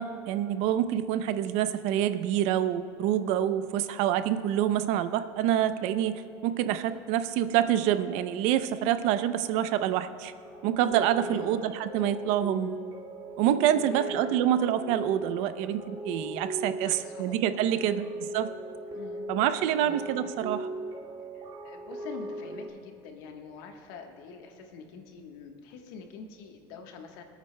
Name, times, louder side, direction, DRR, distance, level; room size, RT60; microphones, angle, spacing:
voice 1, 0.0-10.3 10.6-12.8 13.4-18.5 19.3-20.7, right 11 dB, 70° right, 12 dB, 0.5 m, -27 dB
sound 1, 10.4-22.7, right 1 dB, 45° right, 2.2 m, -39 dB
voice 2, 11.2-11.6 13.7-14.2 16.8-17.4 17.7-18.1 18.9-20.4 21.3-27.2, left 5 dB, 90° left, 4 dB, 1.2 m, -46 dB
25.0 x 8.8 x 2.2 m, 2.5 s
cardioid pair, 140°, 11 cm